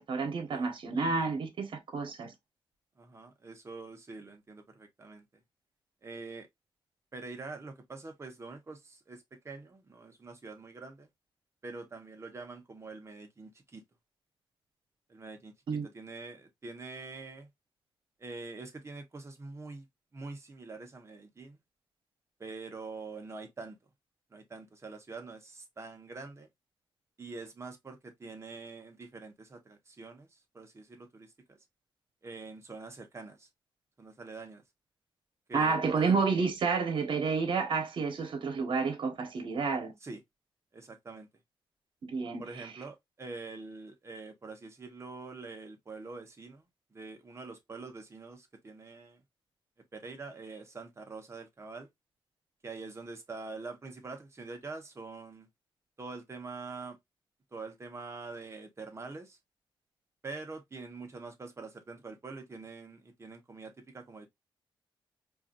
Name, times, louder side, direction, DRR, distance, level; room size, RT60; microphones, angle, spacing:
voice 1, 0.0-2.3 15.7-15.9 35.5-39.9 42.0-42.7, right 4 dB, 65° right, 1.3 m, -30 dB
voice 2, 3.0-5.3 6.0-6.5 7.1-11.1 11.6-13.8 15.1-17.5 18.2-19.9 20.1-21.6 22.4-23.8 24.3-26.5 27.2-31.6 32.2-33.5 34.0-34.6 35.5-36.2 40.0-40.2 40.7-41.3 42.4-46.7 46.9-49.2 49.9-51.9 52.6-55.5 56.0-57.0 57.5-59.4 60.2-64.3, right 3 dB, 30° right, 1.3 m, -45 dB
4.7 x 2.8 x 2.5 m
wide cardioid pair, 110°, 9 cm